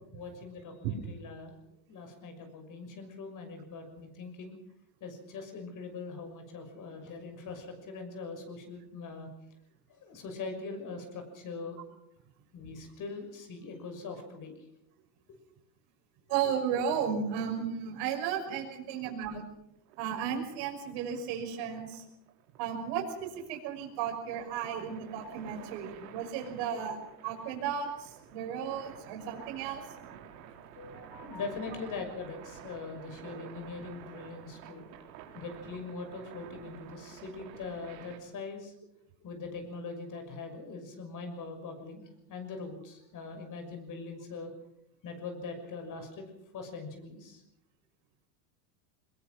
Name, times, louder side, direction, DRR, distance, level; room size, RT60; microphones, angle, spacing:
voice 1, 0.1-1.6 1.9-4.6 5.0-9.3 10.0-11.8 12.5-14.5 30.8-34.9 35.3-38.7 39.2-44.5 45.0-46.3 46.5-47.4, left 4 dB, 40° left, 5 dB, 6.3 m, -42 dB
voice 2, 16.3-19.4 20.0-22.0 22.6-27.0 27.2-29.8, right 8 dB, 60° right, 3 dB, 6.0 m, -34 dB
sound 1, 19.9-38.2, right 9 dB, 80° right, 4.1 m, -51 dB
22.5 x 21.0 x 6.2 m, 0.80 s
supercardioid pair, 120°, 49 cm